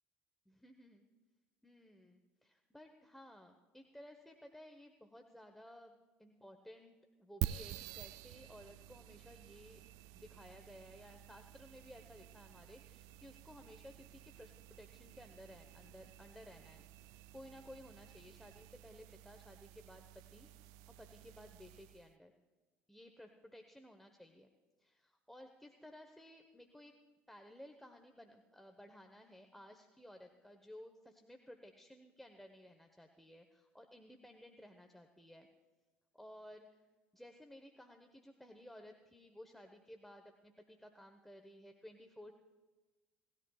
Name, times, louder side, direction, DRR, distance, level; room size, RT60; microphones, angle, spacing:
voice 1, 0.5-1.1 1.6-9.8 10.1-16.9 17.3-20.5 21.0-22.3 22.9-24.5 24.8-27.0 27.3-35.5 36.1-36.8 37.1-42.3, left 1 dB, 5° left, 4 dB, 1.2 m, -56 dB
sound 1, 7.4-22.1, right 14 dB, 70° right, 0.4 m, -49 dB
19.0 x 13.0 x 2.4 m, 1.3 s
hypercardioid pair, 60°, 6 cm